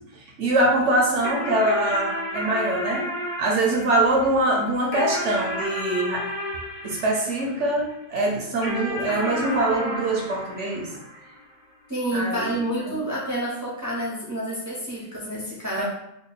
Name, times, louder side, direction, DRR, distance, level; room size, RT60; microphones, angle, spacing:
voice 1, 0.1-3.1 3.4-6.2 6.8-10.9 12.1-12.5 15.8-15.9, right 1 dB, 60° right, -1 dB, 0.8 m, -23 dB
sound 1, 1.2-7.9 8.6-11.4, left 1 dB, 55° left, 0.8 m, -32 dB
voice 2, 11.9-15.8, right 1 dB, 25° right, -7 dB, 0.4 m, -29 dB
3.0 x 2.2 x 4.0 m, 0.80 s
omnidirectional pair, 1.7 m